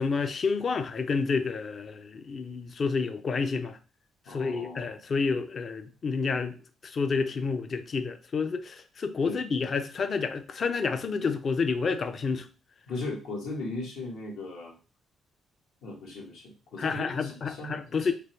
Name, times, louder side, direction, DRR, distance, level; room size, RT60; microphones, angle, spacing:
voice 1, 0.0-3.8 4.3-6.5 6.9-12.4 16.8-18.1, left 4 dB, 45° left, 0.5 m, -29 dB
voice 2, 4.2-4.9 9.2-9.4 12.9-14.7 15.8-18.1, left 2 dB, 85° left, 1.3 m, -37 dB
3.4 x 2.2 x 4.3 m
cardioid pair, 90°, 0 cm